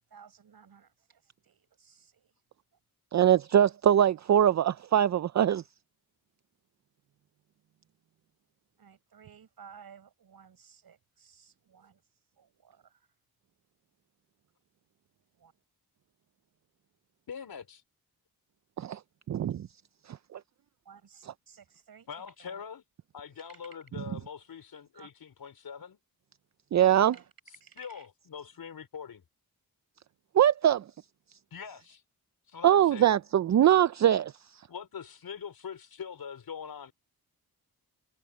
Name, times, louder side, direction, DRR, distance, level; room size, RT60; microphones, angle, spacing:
voice 1, 0.1-2.3 8.8-12.0 12.4-13.0 15.4-15.5 20.9-22.6 23.5-23.6 24.9-25.1 25.7-25.8 27.0-27.3 27.6-28.1, right 7 dB, 70° right, 5.6 m, -55 dB
voice 2, 3.1-5.6 18.8-19.0 19.3-19.7 26.7-27.1 30.3-30.8 32.6-34.3, right 10 dB, 50° right, 0.5 m, -22 dB
voice 3, 17.3-17.8 22.1-22.8 23.1-26.0 27.7-29.2 31.5-32.0 32.5-33.2 34.7-36.9, left 7 dB, 70° left, 4.7 m, -43 dB
wide cardioid pair, 105°, 38 cm